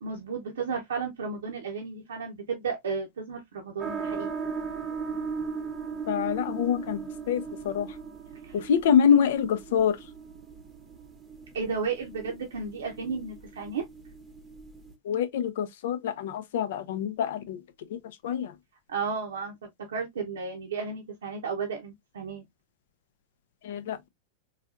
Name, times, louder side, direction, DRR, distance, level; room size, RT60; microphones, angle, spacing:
voice 1, 0.0-4.4 8.4-8.6 11.5-13.8 18.9-19.5 19.9-22.4, right 5 dB, 65° right, 0.7 m, -33 dB
sound 1, 3.8-14.9, right 5 dB, 15° right, 0.8 m, -38 dB
voice 2, 6.1-7.0 7.3-7.9 8.5-9.9 15.1-17.6 17.9-18.0 18.2-18.5 23.6-24.1, left 8 dB, 55° left, 0.5 m, -25 dB
4.0 x 2.7 x 2.4 m
figure-of-eight pair, 90°, 0 cm